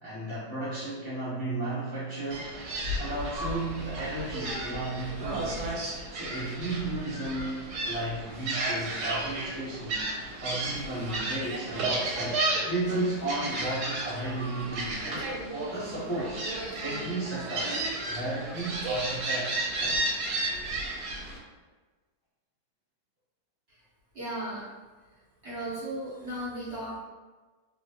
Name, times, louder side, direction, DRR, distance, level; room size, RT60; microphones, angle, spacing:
voice 1, 0.0-2.6 3.0-5.8 6.1-16.4 16.8-17.8 18.1-20.0, right 2 dB, 25° left, -13 dB, 0.7 m, -34 dB
Gull seagull, 2.3-21.4, right 2 dB, 75° right, 1.1 m, -33 dB
voice 2, 24.1-24.7 25.4-27.0, right 1 dB, 45° right, -11 dB, 1.3 m, -35 dB
2.9 x 2.2 x 2.9 m, 1.3 s
omnidirectional pair, 1.8 m